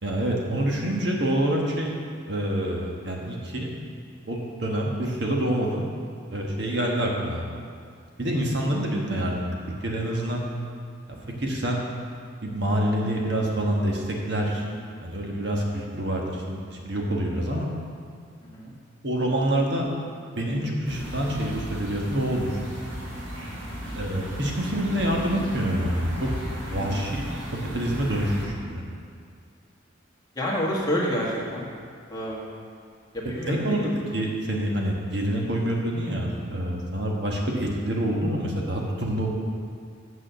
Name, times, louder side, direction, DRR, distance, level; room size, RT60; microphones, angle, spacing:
voice 1, 0.0-1.9 2.3-3.7 4.3-5.9 6.3-7.4 8.2-9.5 9.8-10.4 11.2-11.8 12.4-14.6 15.0-17.7 19.0-19.9 20.4-22.6 23.9-26.3 26.6-27.4 27.7-28.8 33.4-39.3, right 1 dB, 55° right, -1 dB, 1.3 m, -27 dB
voice 2, 11.1-11.4 14.7-14.9 18.4-18.7 23.7-24.0 26.7-27.2 30.3-31.6 32.1-32.6 33.1-33.9, equal, 20° left, -5 dB, 1.5 m, -30 dB
sound 1, 20.9-28.5, equal, 75° right, 1.7 m, -35 dB
7.4 x 6.4 x 6.8 m, 2.2 s
head